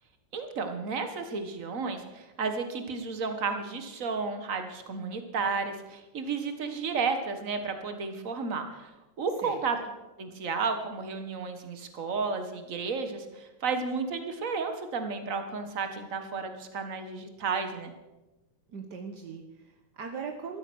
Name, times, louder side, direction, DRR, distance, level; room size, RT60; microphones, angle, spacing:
voice 1, 0.3-8.9 9.2-9.8 10.2-17.9, right 4 dB, 40° right, 7 dB, 1.3 m, -32 dB
voice 2, 18.7-20.6, right 5 dB, 65° right, 3 dB, 1.0 m, -40 dB
15.0 x 13.0 x 6.3 m, 1.0 s
omnidirectional pair, 3.5 m